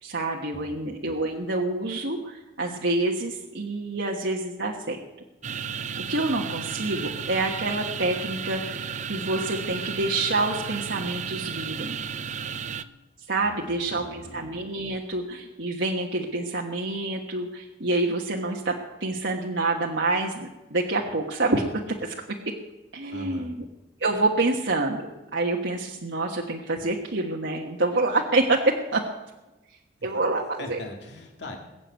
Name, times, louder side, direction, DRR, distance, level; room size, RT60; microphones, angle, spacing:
voice 1, 0.0-5.0 6.1-12.0 13.3-22.1 22.4-22.5 22.9-23.5 24.0-25.1 25.3-29.0 30.0-30.8, right 2 dB, 70° right, -1 dB, 1.4 m, -27 dB
sound 1, 5.4-12.8, right 7 dB, 40° right, 0.5 m, -33 dB
voice 2, 13.5-14.4 23.1-23.5 30.0-30.1 30.6-31.6, left 1 dB, 65° left, 2 dB, 2.2 m, -40 dB
21.0 x 7.9 x 8.1 m, 1.1 s
head